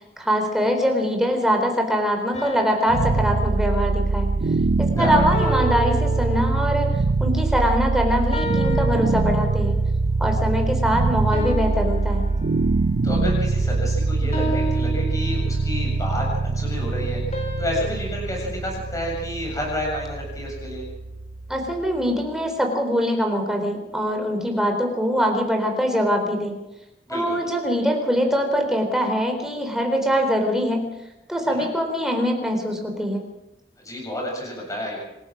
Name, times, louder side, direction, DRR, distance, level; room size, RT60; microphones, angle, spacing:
voice 1, 0.2-4.3 4.8-6.9 7.2-9.8 10.2-12.3 21.5-26.6 27.1-30.9 31.3-33.3, equal, 5° right, 2 dB, 3.9 m, -23 dB
sound 1, 2.3-4.3 5.3-7.0 8.3-9.9 11.3-13.0 14.3-15.9 17.3-19.7, equal, 40° left, 4.6 m, -33 dB
sound 2, 2.9-21.9, right 3 dB, 65° right, 0.6 m, -23 dB
voice 2, 5.0-5.5 13.0-20.8 27.1-27.4 31.4-31.7 33.8-35.0, left 1 dB, 20° left, -1 dB, 7.6 m, -30 dB
27.0 x 16.0 x 6.2 m, 0.95 s
head